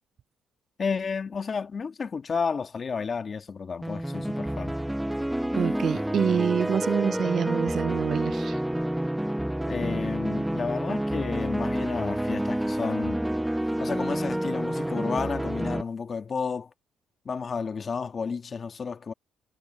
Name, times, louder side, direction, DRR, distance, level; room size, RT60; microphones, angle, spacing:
voice 1, 0.8-4.7 9.7-13.3 13.8-16.7 17.2-19.1, left 5 dB, 40° left, 1.5 m, -31 dB
sound 1, 3.8-15.8, right 1 dB, 5° right, 1.0 m, -29 dB
voice 2, 5.5-8.6, right 7 dB, 55° right, 0.3 m, -26 dB
cardioid pair, 90°, 0 cm